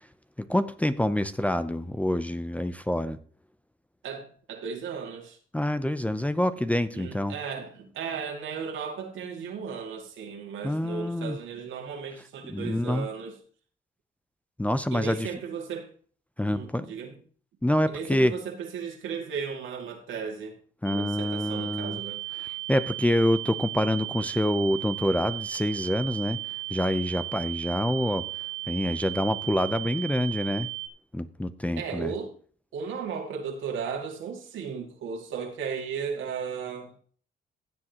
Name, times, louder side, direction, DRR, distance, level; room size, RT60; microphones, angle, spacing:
voice 1, 0.4-3.2 5.5-7.3 10.6-11.4 12.4-13.1 14.6-15.3 16.4-16.9 17.6-18.3 20.8-22.0 22.4-26.4 26.7-28.2 28.7-30.7 31.1-32.1, left 1 dB, 5° left, 0.6 m, -26 dB
voice 2, 4.0-5.4 6.9-13.3 14.9-15.9 16.5-17.1 17.9-20.5 20.9-22.2 31.8-32.3 32.7-36.9, right 6 dB, 80° right, 2.4 m, -35 dB
sound 1, 20.9-30.9, right 18 dB, 55° right, 0.9 m, -36 dB
16.0 x 7.6 x 3.0 m
cardioid pair, 90°, 20 cm